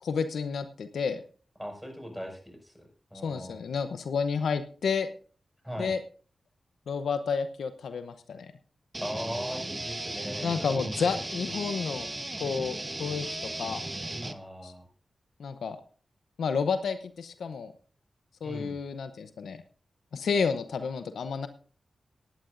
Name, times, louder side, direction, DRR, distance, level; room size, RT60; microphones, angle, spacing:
voice 1, 0.0-1.2 3.2-5.1 5.8-6.0 6.9-8.5 10.4-12.1 12.4-13.8 14.6-14.7 15.4-15.8 16.4-17.7 18.4-19.6 20.1-21.5, left 5 dB, 85° left, 11 dB, 0.8 m, -30 dB
voice 2, 1.6-2.7 3.1-3.6 5.6-5.9 9.0-11.2 11.4-11.8 14.2-14.8 18.4-18.8, equal, ahead, 3 dB, 5.8 m, -39 dB
sound 1, 8.9-14.3, right 2 dB, 25° right, 1.1 m, -36 dB
17.5 x 11.0 x 2.6 m, 0.39 s
cardioid pair, 40°, 0 cm